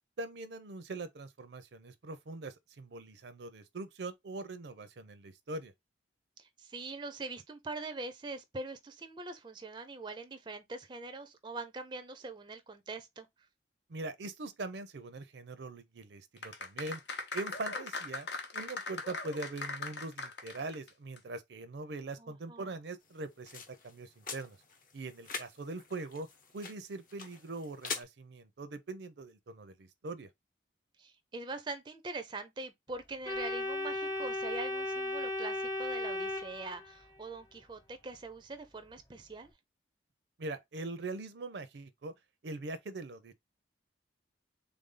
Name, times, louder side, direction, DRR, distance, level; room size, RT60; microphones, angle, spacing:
voice 1, 0.2-5.7 13.9-17.0 17.3-18.3 18.5-24.6 24.9-26.3 26.5-30.3 40.4-42.1 42.4-43.3, right 2 dB, 75° right, 0.5 m, -42 dB
voice 2, 6.4-13.3 22.2-22.7 31.0-39.5, right 3 dB, 25° right, 0.4 m, -43 dB
sound 1, 16.4-20.9 21.2-21.3, left 3 dB, 80° left, 0.8 m, -40 dB
sound 2, 23.0-28.0, left 5 dB, 50° left, 0.9 m, -45 dB
Organ, 33.2-37.2, left 1 dB, 20° left, 0.6 m, -36 dB
3.5 x 2.6 x 3.6 m
head